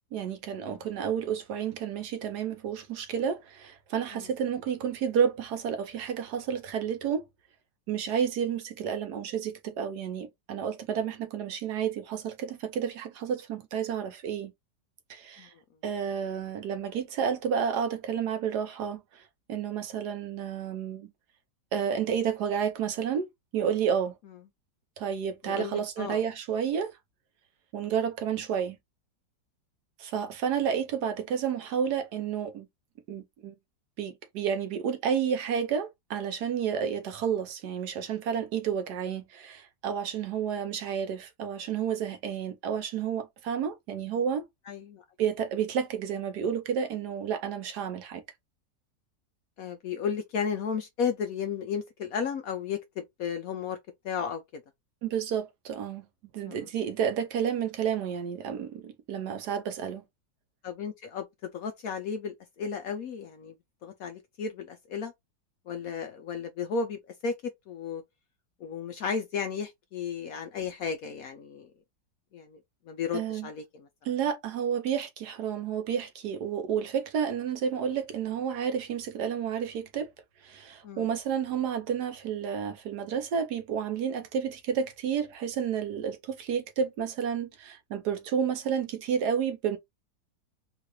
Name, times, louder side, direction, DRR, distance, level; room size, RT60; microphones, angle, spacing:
voice 1, 0.1-7.3 7.9-14.5 15.1-15.5 15.8-19.2 19.5-21.1 21.7-23.3 23.5-24.2 25.0-27.0 27.7-28.8 30.0-32.7 33.1-33.5 34.0-44.4 45.2-48.2 55.0-56.1 56.3-60.0 73.1-73.5 74.0-80.1 80.4-89.8, right 7 dB, 70° right, 1.2 m, -31 dB
voice 2, 25.4-26.2 44.7-45.0 49.6-53.8 54.0-54.6 56.5-56.7 60.6-63.5 63.8-65.1 65.7-67.4 67.7-68.0 68.6-71.7 72.3-72.6 72.9-73.9 80.8-81.1, left 6 dB, 65° left, 0.9 m, -34 dB
3.7 x 2.5 x 3.1 m
omnidirectional pair, 2.0 m